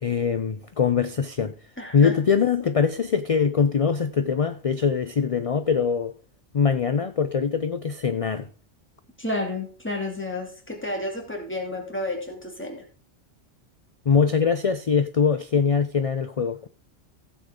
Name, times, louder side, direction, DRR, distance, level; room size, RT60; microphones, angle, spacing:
voice 1, 0.0-1.5 1.9-6.2 6.5-8.5 14.1-16.7, left 6 dB, 45° left, 0.4 m, -22 dB
voice 2, 1.8-2.1 9.2-12.8, left 1 dB, 10° left, 2.6 m, -31 dB
15.0 x 7.2 x 3.7 m
omnidirectional pair, 1.2 m